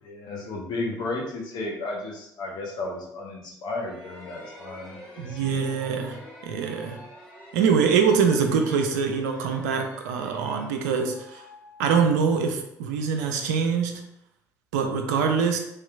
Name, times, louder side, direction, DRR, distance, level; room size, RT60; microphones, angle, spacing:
voice 1, 0.0-5.6, left 2 dB, 50° left, 0 dB, 0.8 m, -34 dB
sound 1, 3.8-12.4, left 1 dB, 10° left, 1.3 m, -47 dB
voice 2, 5.2-7.0 7.5-11.4 11.8-14.0 14.7-15.6, right 6 dB, 70° right, 5 dB, 0.4 m, -24 dB
3.2 x 2.8 x 2.3 m, 0.80 s
figure-of-eight pair, 50°, 9 cm